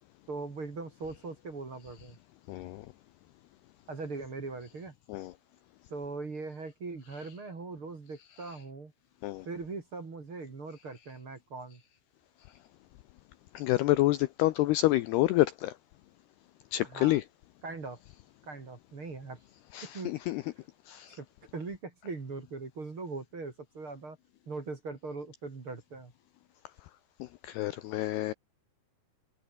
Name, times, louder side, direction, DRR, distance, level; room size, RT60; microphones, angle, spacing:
voice 1, 0.3-2.2 3.9-4.9 5.9-8.9 9.4-11.8 16.9-17.2 17.6-18.0 18.4-19.4 19.9-20.1 21.1-21.3 21.5-24.2 24.5-26.1, right 3 dB, 30° right, 3.4 m, -40 dB
voice 2, 2.5-2.9 5.1-5.3 9.2-9.5 13.5-15.7 16.7-17.2 19.7-20.4 20.9-21.2 27.2-28.3, left 17 dB, 80° left, 2.4 m, -28 dB
omnidirectional pair, 5.4 m